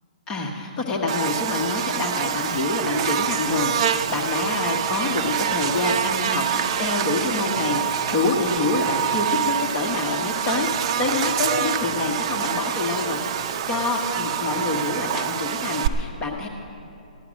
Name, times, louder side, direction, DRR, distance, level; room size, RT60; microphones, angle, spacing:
voice 1, 0.3-10.7 11.0-16.5, left 3 dB, 20° left, 0 dB, 1.1 m, -26 dB
Buzz, 1.1-15.9, right 9 dB, 40° right, 0.6 m, -26 dB
16.0 x 11.5 x 6.3 m, 2.6 s
hypercardioid pair, 160°, 4 cm